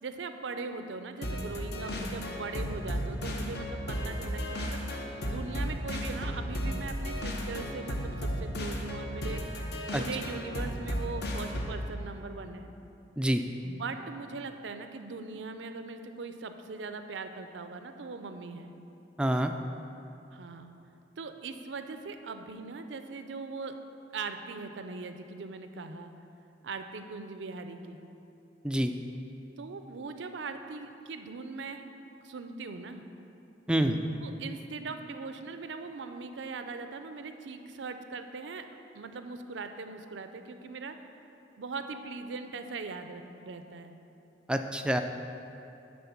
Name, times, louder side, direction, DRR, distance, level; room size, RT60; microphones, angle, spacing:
voice 1, 0.0-4.8 5.3-9.4 9.9-12.7 13.6-18.7 20.3-20.7 21.2-23.8 24.1-26.1 26.6-28.0 29.6-31.9 32.2-33.0 34.2-38.6 38.9-41.0 41.6-44.0, right 4 dB, 75° right, 8 dB, 0.5 m, -40 dB
sound 1, 1.2-11.9, equal, 60° left, 0.9 m, -34 dB
voice 2, 19.2-19.5 28.6-28.9 33.7-34.0 44.5-45.0, right 1 dB, 5° right, 6 dB, 0.3 m, -26 dB
9.6 x 3.8 x 7.2 m, 2.9 s
head